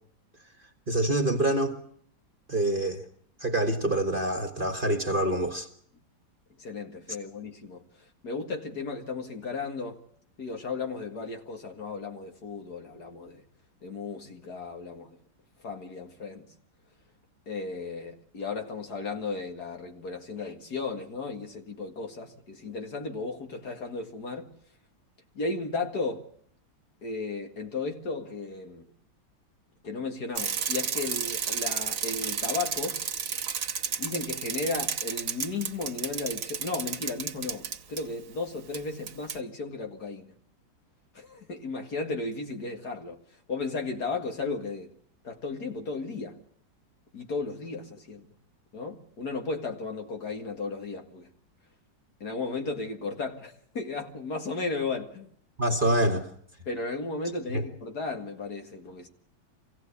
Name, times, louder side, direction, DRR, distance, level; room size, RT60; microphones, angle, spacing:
voice 1, 0.9-1.8 2.5-3.0 3.4-5.7 55.6-56.3 57.5-57.6, right 1 dB, 30° right, 1.5 m, -26 dB
voice 2, 6.6-7.8 8.2-10.0 10.4-13.4 13.8-15.2 15.6-16.5 17.5-24.5 25.3-26.3 27.0-28.9 29.8-33.0 34.0-40.3 41.1-43.2 43.5-44.9 45.2-46.4 47.1-48.3 48.7-51.3 52.2-55.3 56.7-59.1, left 3 dB, 55° left, 2.4 m, -35 dB
Bicycle, 30.3-38.0 38.7-38.8 39.1-39.4, right 7 dB, 80° right, 2.0 m, -32 dB
25.0 x 16.5 x 8.4 m
omnidirectional pair, 2.1 m